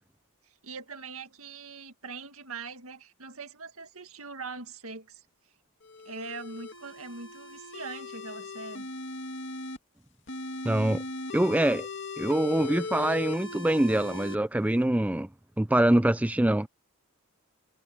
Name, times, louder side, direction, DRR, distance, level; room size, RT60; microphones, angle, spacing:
voice 1, 0.4-5.2 6.0-8.9, right 4 dB, 75° right, 2.0 m, -42 dB
sound 1, 5.8-9.8 10.3-14.3, left 3 dB, 55° left, 2.4 m, -38 dB
voice 2, 10.7-11.0 11.3-11.9 12.2-15.3 15.6-16.7, right 1 dB, 5° right, 0.3 m, -24 dB
head